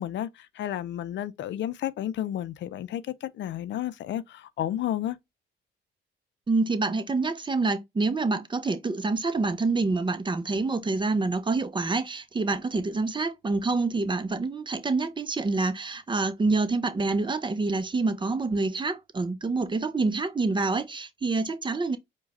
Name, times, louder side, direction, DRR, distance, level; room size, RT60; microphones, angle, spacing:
voice 1, 0.0-5.2, left 12 dB, 65° left, 0.5 m, -32 dB
voice 2, 6.5-22.0, right 3 dB, 25° right, 0.7 m, -27 dB
4.7 x 2.3 x 4.2 m
cardioid pair, 90°, 20 cm